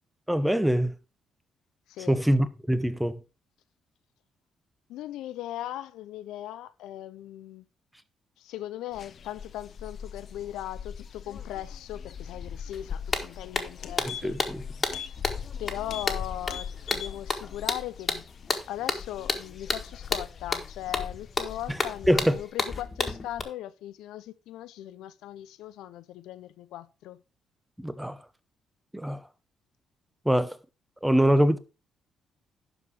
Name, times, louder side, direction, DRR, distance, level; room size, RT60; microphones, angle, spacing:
voice 1, 0.3-0.9 2.1-3.2 14.0-14.6 22.1-22.4 27.8-28.2 28.9-29.2 30.2-30.6 31.0-31.6, equal, 5° right, 0.9 m, -24 dB
voice 2, 4.9-7.7 8.4-14.4 15.6-27.2, left 13 dB, 90° left, 0.5 m, -39 dB
sound 1, 8.9-22.5, left 7 dB, 50° left, 0.9 m, -41 dB
sound 2, 12.7-12.8 13.1-23.4, left 3 dB, 30° left, 1.7 m, -31 dB
sound 3, 13.2-13.3 13.6-14.5 14.9-15.1 15.4-15.6 15.9-16.1 16.4-17.2 17.5-17.6, left 9 dB, 75° left, 1.1 m, -39 dB
11.5 x 4.8 x 4.8 m
cardioid pair, 90°, 0 cm